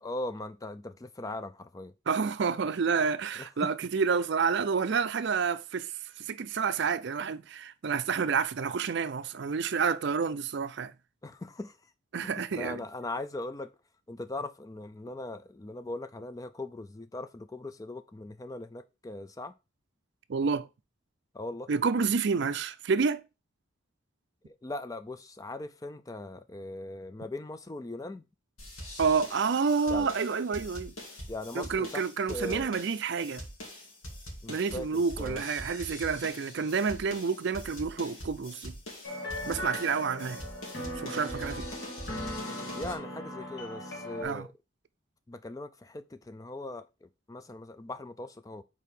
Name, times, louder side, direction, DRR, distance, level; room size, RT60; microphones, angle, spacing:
voice 1, 0.0-1.9 3.4-3.7 11.2-11.9 12.2-13.7 14.1-19.5 21.3-21.7 24.4-28.3 29.9-30.1 31.3-32.7 34.4-35.4 42.8-44.5 45.3-48.6, left 2 dB, 15° left, 0.3 m, -40 dB
voice 2, 2.1-5.9 6.2-10.9 12.1-12.8 20.3-20.7 21.7-23.2 29.0-30.9 31.5-33.4 34.5-38.8 39.4-40.4 41.0-41.7 44.2-44.5, right 5 dB, 55° right, 0.4 m, -29 dB
sound 1, 28.6-42.9, equal, 85° left, 2.2 m, -43 dB
sound 2, 39.0-44.2, left 1 dB, 50° left, 1.7 m, -38 dB
4.7 x 4.2 x 5.2 m
head